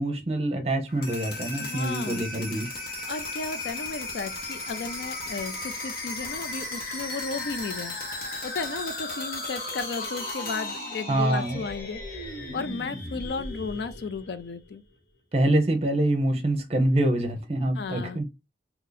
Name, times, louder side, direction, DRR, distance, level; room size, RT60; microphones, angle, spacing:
voice 1, 0.0-2.7 11.1-11.6 15.3-18.2, right 1 dB, 35° right, 0.7 m, -25 dB
sound 1, 0.9-14.7, left 2 dB, 55° left, 1.1 m, -35 dB
voice 2, 1.5-2.3 3.1-8.0 8.4-12.3 12.5-14.8 17.8-18.2, left 4 dB, 70° left, 0.4 m, -34 dB
2.8 x 2.7 x 3.9 m
head